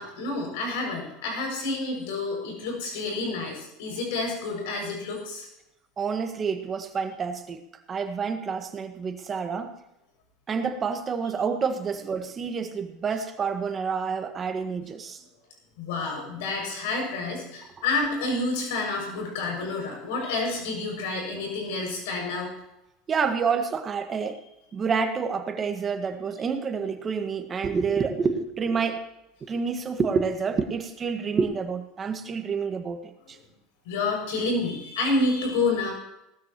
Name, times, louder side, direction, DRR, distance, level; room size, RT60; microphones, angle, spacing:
voice 1, 0.0-5.5 15.8-22.5 33.8-35.9, left 3 dB, 80° left, 1 dB, 6.5 m, -29 dB
voice 2, 6.0-7.6 7.9-9.7 10.5-15.2 23.1-24.4 24.7-29.0 29.4-33.4, right 5 dB, 30° right, 6 dB, 1.6 m, -28 dB
18.5 x 13.0 x 3.1 m, 0.85 s
supercardioid pair, 110°, 0 cm